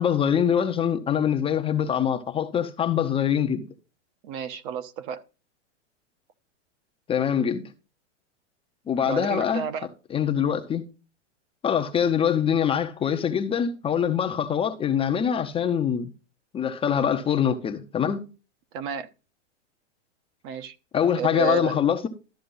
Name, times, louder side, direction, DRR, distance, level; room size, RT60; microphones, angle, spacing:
voice 1, 0.0-3.7 7.1-7.6 8.9-9.7 10.1-10.9 11.6-16.1 16.5-18.3 20.9-22.1, left 8 dB, 15° left, 0.8 m, -24 dB
voice 2, 4.2-5.2 9.0-9.9 18.7-19.1 20.4-20.8 21.1-21.8, right 7 dB, 45° right, 1.1 m, -31 dB
13.0 x 6.7 x 3.9 m
hypercardioid pair, 140°, 37 cm